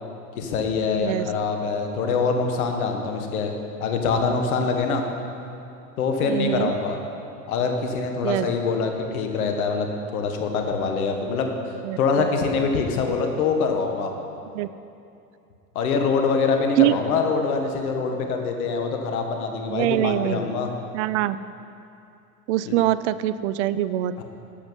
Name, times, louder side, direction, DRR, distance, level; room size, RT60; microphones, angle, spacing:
voice 1, 0.4-3.5 3.8-5.0 6.0-7.0 7.5-11.5 12.0-14.1 15.7-20.7 22.6-22.8 24.2-24.3, left 4 dB, 60° left, 4 dB, 1.6 m, -24 dB
voice 2, 6.2-6.7 8.2-8.5 11.8-12.3 14.6-14.7 16.8-16.9 19.7-20.4 20.9-21.4 22.5-24.1, right 14 dB, 50° right, 15 dB, 0.5 m, -23 dB
11.5 x 7.8 x 5.6 m, 2.6 s
hypercardioid pair, 90°, 48 cm